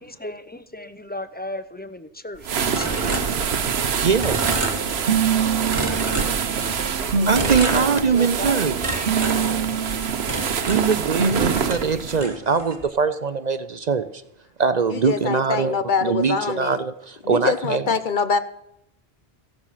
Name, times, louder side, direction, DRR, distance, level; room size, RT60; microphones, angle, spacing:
voice 1, 0.0-3.5 6.5-7.9 8.1-9.6 11.5-11.7, left 1 dB, 10° left, 0.7 m, -36 dB
sound 1, 2.4-12.2, right 7 dB, 90° right, 1.1 m, -25 dB
sound 2, 2.8-3.9 4.2-5.3 5.7-6.9 7.3-8.5 8.8-11.4 11.7-12.9, right 1 dB, 30° right, 2.1 m, -31 dB
voice 2, 4.0-4.4 7.3-8.8 10.6-14.2 14.6-17.8, right 5 dB, 50° right, 0.7 m, -22 dB
sound 3, 4.6-11.6, right 6 dB, 65° right, 1.0 m, -27 dB
voice 3, 14.9-16.8 17.2-18.4, left 5 dB, 55° left, 0.9 m, -24 dB
15.5 x 12.0 x 5.7 m
omnidirectional pair, 1.0 m